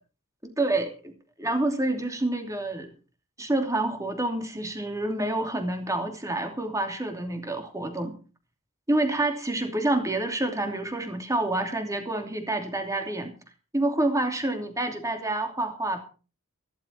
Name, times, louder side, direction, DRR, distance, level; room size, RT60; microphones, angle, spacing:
voice 1, 0.4-1.1 1.4-2.9 3.4-8.2 8.9-13.3 13.7-16.0, right 2 dB, 15° right, 4 dB, 2.9 m, -28 dB
15.5 x 13.0 x 4.6 m, 0.35 s
head